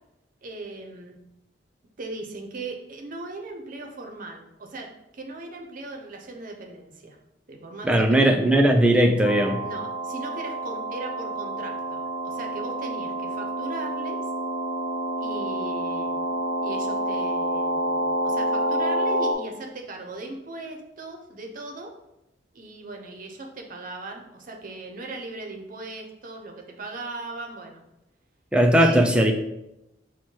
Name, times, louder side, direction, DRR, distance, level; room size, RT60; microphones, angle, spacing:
voice 1, 0.4-1.1 2.0-7.2 7.5-8.4 9.6-14.2 15.2-16.3 16.6-21.9 22.5-27.8 28.8-29.1, right 2 dB, 45° right, 2 dB, 0.6 m, -38 dB
voice 2, 7.8-9.6 28.5-29.3, right 1 dB, 5° right, 3 dB, 0.3 m, -18 dB
sound 1, 9.2-19.3, right 1 dB, 80° left, 0.6 m, -28 dB
4.4 x 2.2 x 4.4 m, 0.87 s
head